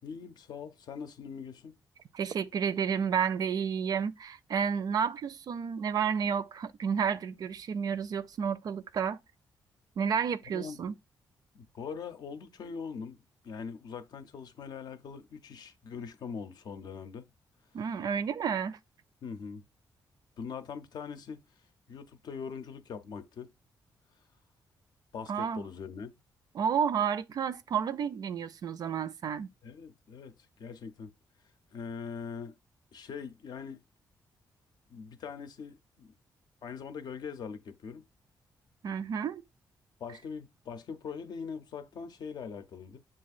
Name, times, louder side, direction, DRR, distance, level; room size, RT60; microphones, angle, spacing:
voice 1, 0.0-1.8 10.5-10.8 11.5-17.3 19.2-19.6 20.4-21.4 21.9-23.5 25.1-26.2 29.6-31.1 31.7-32.6 32.9-33.8 34.9-36.1 36.6-38.1 40.0-43.0, left 6 dB, 65° left, 0.6 m, -42 dB
voice 2, 2.1-9.2 10.0-10.9 17.7-18.8 25.3-25.6 26.5-29.5 38.8-39.4, right 7 dB, 60° right, 0.4 m, -31 dB
7.2 x 2.5 x 2.4 m
cardioid pair, 120°, 7 cm